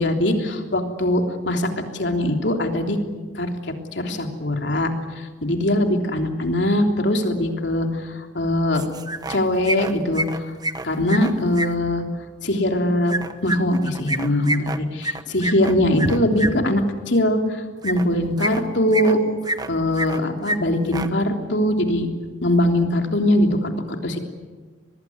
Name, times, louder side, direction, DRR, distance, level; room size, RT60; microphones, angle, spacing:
voice 1, 0.0-1.7 2.0-3.0 3.4-3.5 3.9-4.9 5.4-8.0 8.3-8.8 9.3-10.4 10.8-12.0 12.4-13.1 13.4-19.2 19.7-22.1 22.4-24.2, left 1 dB, 70° left, 4 dB, 3.3 m, -21 dB
sound 1, 8.7-9.4 9.6-11.7 13.1-16.5 17.8-18.0 18.4-19.1 19.4-20.2 20.4-20.6 20.8-21.1, right 1 dB, 20° right, 1.1 m, -27 dB
25.0 x 20.5 x 9.6 m, 1.4 s
head